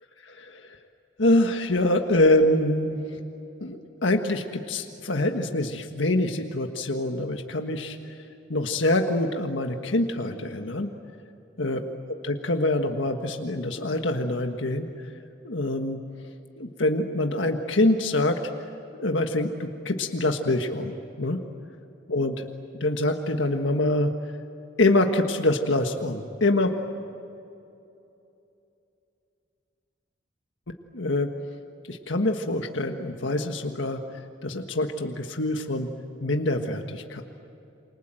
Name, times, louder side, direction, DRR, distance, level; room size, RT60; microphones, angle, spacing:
voice 1, 0.2-0.8 1.2-3.1 3.6-8.0 8.5-10.9 11.6-14.9 15.4-16.0 16.6-18.4 19.0-21.4 22.1-22.5 22.8-24.1 24.8-26.7 30.9-31.3 31.9-34.0 34.4-35.9 36.2-37.2, left 1 dB, 90° left, 4 dB, 1.6 m, -25 dB
28.5 x 26.0 x 7.8 m, 2.8 s
head